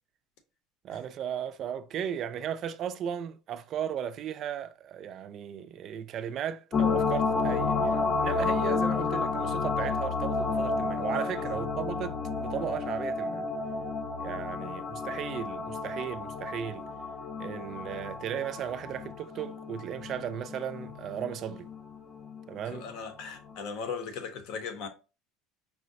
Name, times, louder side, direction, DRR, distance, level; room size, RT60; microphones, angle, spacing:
voice 1, 0.8-13.4 14.2-16.9 17.4-21.7 22.5-22.9, right 9 dB, 45° right, 0.3 m, -36 dB
sound 1, 6.7-22.4 22.8-22.9, left 4 dB, 25° left, 0.4 m, -31 dB
voice 2, 11.0-11.6 22.7-24.9, left 5 dB, 65° left, 0.7 m, -39 dB
4.7 x 2.0 x 2.6 m
cardioid pair, 140°, 0 cm